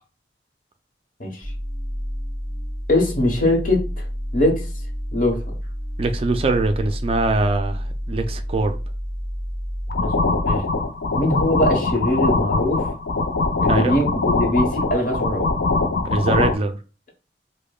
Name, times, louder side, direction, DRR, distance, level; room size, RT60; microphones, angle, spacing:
voice 1, 1.2-1.5 2.9-4.0 4.3-4.7 5.1-5.4 10.0-10.7 11.2-12.8 13.6-15.5, left 1 dB, 50° left, 1 dB, 1.0 m, -22 dB
sound 1, 1.4-10.5, equal, 5° left, 1.1 m, -29 dB
voice 2, 6.0-8.8 13.7-14.0 16.1-16.8, right 3 dB, 30° right, 7 dB, 0.3 m, -22 dB
sound 2, 9.9-16.5, left 3 dB, 85° left, 0.5 m, -22 dB
5.0 x 2.1 x 2.3 m, 0.33 s
head